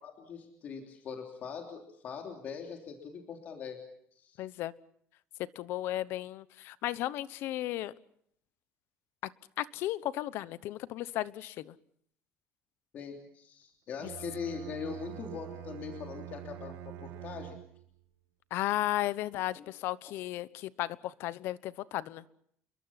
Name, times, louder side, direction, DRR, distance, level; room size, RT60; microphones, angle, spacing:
voice 1, 0.0-3.8 4.1-4.4 12.9-17.6 19.5-19.6, left 6 dB, 40° left, 3 dB, 3.1 m, -42 dB
voice 2, 4.4-4.7 5.4-7.9 9.2-9.3 9.6-11.7 18.5-22.2, left 14 dB, 60° left, 17 dB, 1.0 m, -34 dB
Bowed string instrument, 13.9-18.0, right 12 dB, 60° right, 1.4 m, -45 dB
29.5 x 22.5 x 5.9 m, 0.67 s
cardioid pair, 175°, 5 cm